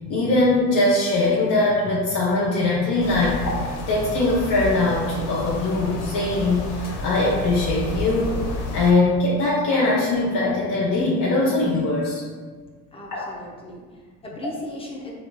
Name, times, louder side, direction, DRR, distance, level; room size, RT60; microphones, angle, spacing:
voice 1, 0.0-12.2 13.1-13.2, left 2 dB, 45° left, -6 dB, 0.9 m, -21 dB
sound 1, 3.0-8.9, left 2 dB, 75° left, 0.7 m, -31 dB
voice 2, 12.9-15.1, left 1 dB, 10° left, -3 dB, 0.7 m, -37 dB
4.1 x 2.4 x 2.3 m, 1.5 s
hypercardioid pair, 65°, 47 cm